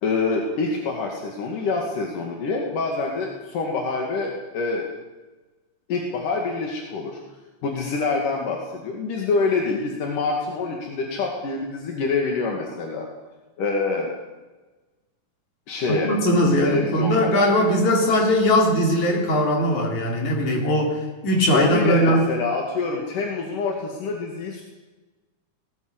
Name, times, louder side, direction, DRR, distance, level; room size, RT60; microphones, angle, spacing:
voice 1, 0.0-5.0 5.9-7.2 7.6-13.1 13.6-14.1 15.7-16.1 16.6-17.4 21.5-24.6, left 4 dB, 85° left, 0 dB, 3.9 m, -26 dB
voice 2, 15.9-22.3, equal, 65° left, 1 dB, 5.0 m, -20 dB
18.0 x 18.0 x 8.2 m, 1.2 s
omnidirectional pair, 3.6 m